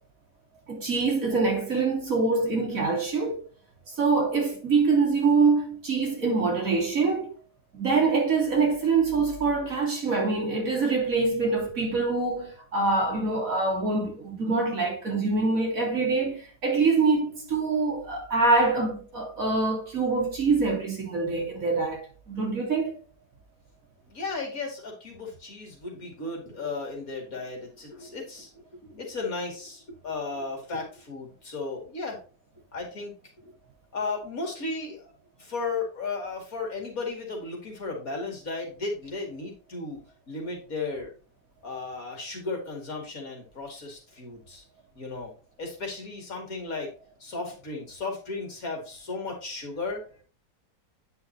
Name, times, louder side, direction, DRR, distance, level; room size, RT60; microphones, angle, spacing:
voice 1, 0.7-3.4 3.9-7.3 7.7-23.0, right 4 dB, 55° right, 3.0 m, -25 dB
voice 2, 24.1-32.2 32.7-33.5 33.9-35.1 35.4-40.0 40.3-41.1 41.6-44.6 44.9-45.3 45.6-46.9 47.2-50.0, left 3 dB, 55° left, 2.7 m, -35 dB
9.1 x 5.6 x 2.8 m
omnidirectional pair, 1.8 m